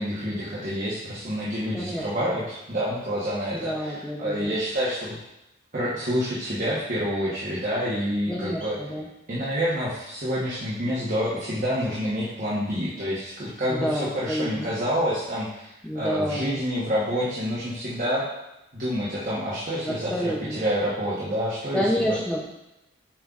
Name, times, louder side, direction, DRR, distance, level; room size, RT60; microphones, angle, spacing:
voice 1, 0.0-5.2 5.7-8.8 9.3-18.2 18.7-22.2, equal, 40° right, -7 dB, 1.1 m, -28 dB
voice 2, 1.7-2.3 3.5-4.6 8.3-9.1 13.7-14.7 15.8-16.6 19.8-20.6 21.7-22.4, equal, 5° left, -3 dB, 0.5 m, -29 dB
7.3 x 5.4 x 2.4 m, 0.91 s
head